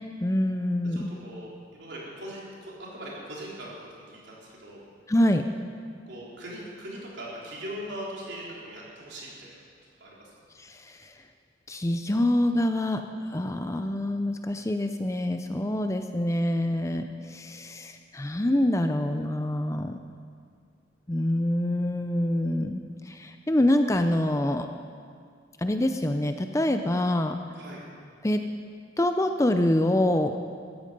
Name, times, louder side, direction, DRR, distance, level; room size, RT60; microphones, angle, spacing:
voice 1, 0.2-1.1 5.1-5.4 10.6-11.1 11.7-13.0 13.3-20.0 21.1-24.7 25.6-27.4 28.2-28.4 29.0-30.3, left 1 dB, 15° left, 7 dB, 0.5 m, -26 dB
voice 2, 0.8-4.8 6.0-9.5 10.0-10.3 27.5-27.8, right 1 dB, 60° right, -5 dB, 4.0 m, -40 dB
15.0 x 14.0 x 5.3 m, 2.1 s
head